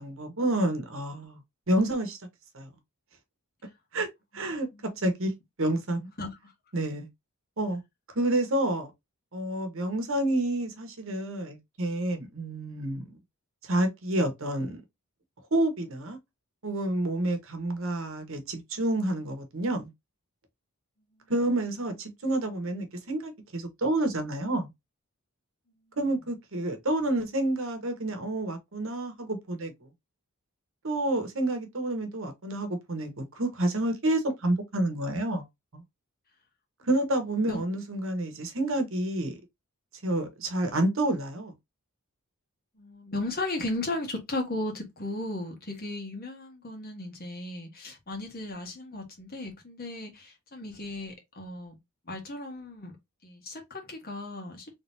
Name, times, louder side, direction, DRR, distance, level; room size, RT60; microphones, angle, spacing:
voice 1, 0.0-1.4 1.7-2.2 2.5-2.7 3.9-4.1 4.3-4.7 5.0-5.3 5.6-6.1 6.7-7.1 7.6-7.8 8.1-8.9 9.3-13.2 13.6-14.8 15.5-16.2 16.6-19.9 21.3-24.7 26.0-29.7 30.8-35.4 35.7-35.8 36.9-39.4 40.0-41.5, right 1 dB, 60° right, 1.1 m, -29 dB
voice 2, 4.3-4.9 6.2-6.5 37.5-37.6 42.8-51.7 52.1-53.0 53.2-54.7, left 2 dB, 45° left, 1.4 m, -36 dB
3.8 x 3.3 x 2.7 m
head